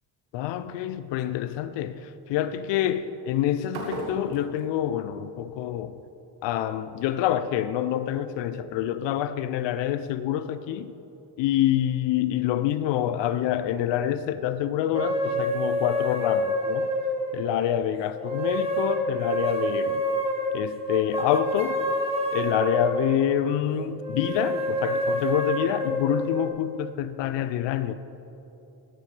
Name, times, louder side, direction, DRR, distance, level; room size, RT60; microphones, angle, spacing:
voice 1, 0.3-5.9 6.4-10.9 11.4-16.9 17.3-20.0 20.5-21.8 22.3-27.9, left 11 dB, 75° left, 12 dB, 0.6 m, -27 dB
sound 1, 3.7-5.8, right 2 dB, 75° right, 1.8 m, -37 dB
sound 2, 14.9-17.7 18.2-23.4 24.0-26.5, equal, 15° right, 1.3 m, -27 dB
14.0 x 10.0 x 3.3 m, 2.9 s
cardioid pair, 115°, 43 cm